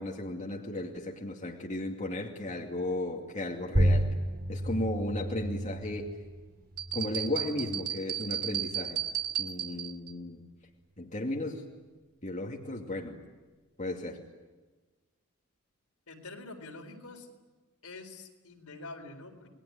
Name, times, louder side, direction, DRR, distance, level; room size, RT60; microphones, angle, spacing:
voice 1, 0.0-4.1 4.5-6.1 6.9-9.0 9.4-10.4 11.0-11.6 12.2-13.2 13.8-14.2, left 1 dB, 35° left, 0 dB, 2.4 m, -35 dB
sound 1, 3.7-8.8, right 1 dB, 50° right, 3.1 m, -32 dB
sound 2, 6.8-10.1, right 10 dB, 90° right, 2.2 m, -34 dB
voice 2, 16.1-17.3 17.8-19.5, left 2 dB, 75° left, 3 dB, 4.2 m, -46 dB
29.5 x 20.5 x 9.7 m, 1.3 s
head